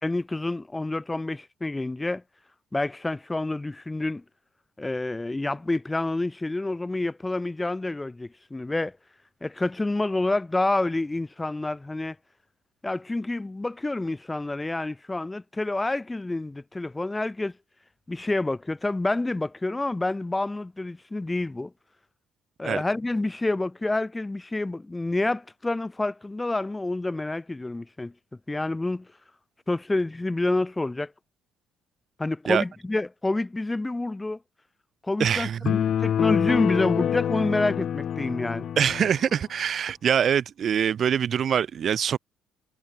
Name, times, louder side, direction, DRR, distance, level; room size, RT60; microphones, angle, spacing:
voice 1, 0.0-2.2 2.7-4.2 4.8-9.0 9.4-12.2 12.8-17.5 18.1-21.7 22.6-28.1 28.5-29.1 29.7-31.1 32.2-34.4 35.0-38.7, left 2 dB, 10° left, 1.9 m, -28 dB
voice 2, 35.2-35.7 38.8-42.2, right 8 dB, 40° right, 6.9 m, -24 dB
sound 1, 35.7-39.2, left 9 dB, 45° left, 1.7 m, -26 dB
cardioid pair, 140°, 0 cm